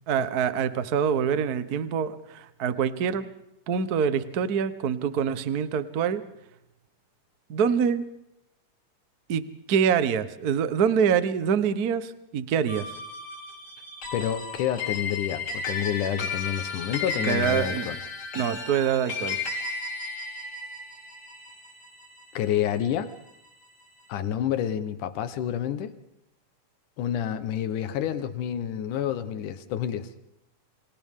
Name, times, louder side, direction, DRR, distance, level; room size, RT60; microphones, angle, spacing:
voice 1, 0.1-3.3 3.7-6.2 7.5-8.1 9.3-12.8 17.2-17.9 18.3-19.4, right 7 dB, 80° right, 12 dB, 0.8 m, -25 dB
sound 1, 12.7-23.3, left 4 dB, 40° left, 4.7 m, -34 dB
voice 2, 14.1-18.0 22.3-23.1 24.1-25.9 27.0-30.3, left 10 dB, 85° left, 11 dB, 2.7 m, -29 dB
29.0 x 27.0 x 3.7 m, 0.82 s
omnidirectional pair, 3.5 m